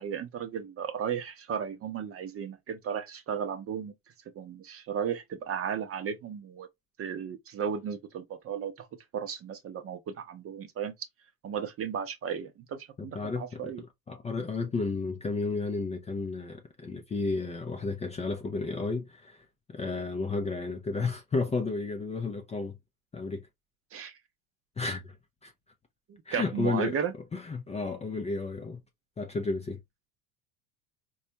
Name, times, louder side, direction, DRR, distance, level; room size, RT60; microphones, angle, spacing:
voice 1, 0.0-3.9 4.3-6.7 7.0-8.9 9.1-10.9 11.4-13.8 23.9-24.2 26.1-27.1, right 7 dB, 35° right, 0.7 m, -35 dB
voice 2, 13.0-22.8 23.1-23.5 24.8-25.2 25.4-25.5 26.3-27.0 27.3-28.8 29.2-29.8, left 3 dB, 15° left, 0.5 m, -32 dB
4.0 x 2.4 x 2.8 m
hypercardioid pair, 90°, 42 cm